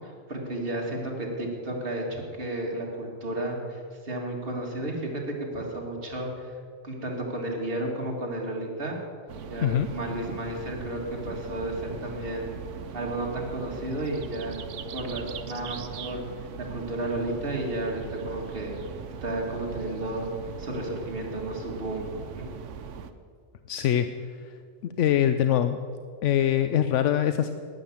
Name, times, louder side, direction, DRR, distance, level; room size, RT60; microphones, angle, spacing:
voice 1, 0.0-6.5 6.8-9.0 9.5-12.6 12.9-14.5 14.9-20.3 20.6-22.5, right 1 dB, 50° right, -1 dB, 2.2 m, -33 dB
sound 1, 9.3-23.1, right 6 dB, 80° right, 1.0 m, -40 dB
voice 2, 23.7-24.1 24.8-25.8 26.2-27.5, left 10 dB, 80° left, 9 dB, 0.9 m, -23 dB
11.5 x 9.4 x 7.2 m, 2.2 s
omnidirectional pair, 1.2 m